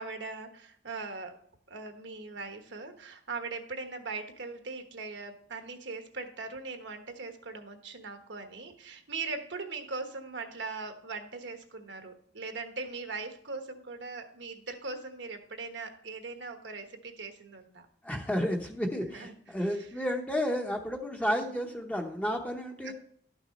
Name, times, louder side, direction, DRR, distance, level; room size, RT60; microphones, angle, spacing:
voice 1, 0.0-1.4 1.7-17.9 19.0-19.9 21.2-21.5 22.8-22.9, right 3 dB, 65° right, 6 dB, 1.2 m, -40 dB
voice 2, 18.0-22.9, equal, 5° left, 2 dB, 0.8 m, -31 dB
12.0 x 6.2 x 4.1 m, 0.63 s
head